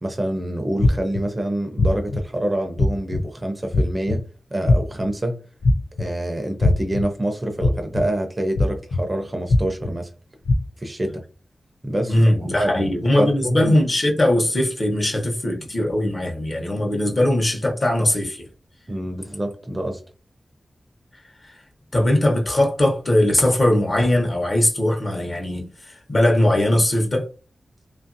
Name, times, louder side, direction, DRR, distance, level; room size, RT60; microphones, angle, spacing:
voice 1, 0.0-4.2 4.5-5.4 6.0-10.1 10.8-11.2 11.8-13.7 18.9-20.0, right 1 dB, 25° right, 0.5 m, -26 dB
sound 1, 0.8-1.2 1.8-2.2 2.8-3.2 3.7-4.2 4.7-5.1 5.6-6.1 6.6-7.0 7.6-8.0 8.6-9.0 9.5-9.9 10.5-10.6, left 2 dB, 75° left, 0.4 m, -18 dB
voice 2, 12.1-18.5 21.4-21.6 21.9-27.3, left 1 dB, 40° left, 0.9 m, -20 dB
2.8 x 2.5 x 2.6 m
wide cardioid pair, 120°, 0 cm